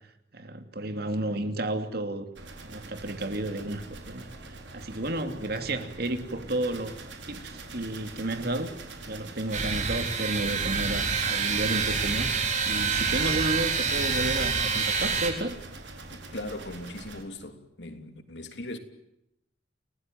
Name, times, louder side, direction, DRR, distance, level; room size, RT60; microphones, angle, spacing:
voice 1, 0.3-2.3 2.6-7.0 7.3-8.7 9.1-15.6, right 1 dB, 55° right, 2.7 m, -32 dB
sound 1, 2.4-17.2, right 2 dB, 75° right, 4.7 m, -45 dB
sound 2, 9.5-15.3, right 5 dB, 40° right, 4.1 m, -27 dB
voice 2, 16.1-18.8, left 1 dB, 70° left, 3.1 m, -39 dB
29.5 x 18.5 x 9.2 m
head